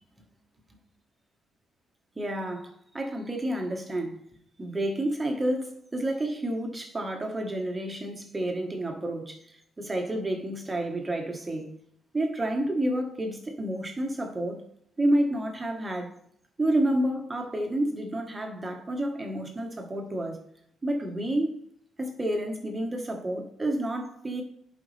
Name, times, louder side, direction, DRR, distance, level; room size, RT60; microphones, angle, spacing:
voice 1, 2.1-4.2 4.6-11.8 12.1-14.6 15.0-16.1 16.6-20.4 20.8-21.6 22.0-24.4, right 1 dB, 20° right, 1.7 m, -29 dB
10.5 x 5.2 x 3.5 m
cardioid pair, 90°, 0 cm